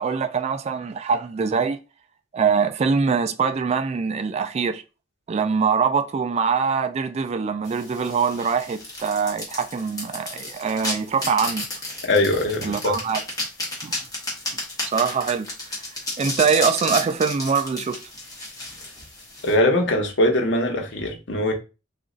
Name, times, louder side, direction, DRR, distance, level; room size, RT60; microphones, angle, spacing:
voice 1, 0.0-1.8 2.3-4.8 5.3-11.7 12.6-13.2 13.8-14.0 14.8-15.7 16.2-18.0, right 5 dB, 35° right, 0.3 m, -23 dB
sound 1, 7.6-19.5, left 2 dB, 20° left, 1.3 m, -32 dB
voice 2, 12.1-13.0 19.4-21.5, left 1 dB, 70° left, 1.0 m, -21 dB
3.1 x 2.4 x 3.8 m
head